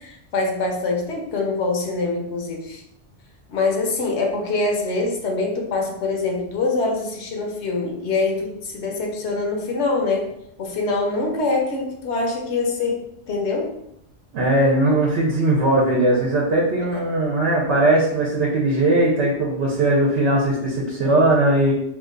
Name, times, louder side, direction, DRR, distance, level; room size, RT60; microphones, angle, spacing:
voice 1, 0.0-2.8 3.5-10.3 10.6-13.0 13.3-13.7, left 3 dB, 70° left, 0 dB, 1.0 m, -24 dB
voice 2, 14.3-21.7, right 1 dB, 65° right, -3 dB, 0.9 m, -19 dB
2.8 x 2.3 x 3.7 m, 0.77 s
omnidirectional pair, 1.3 m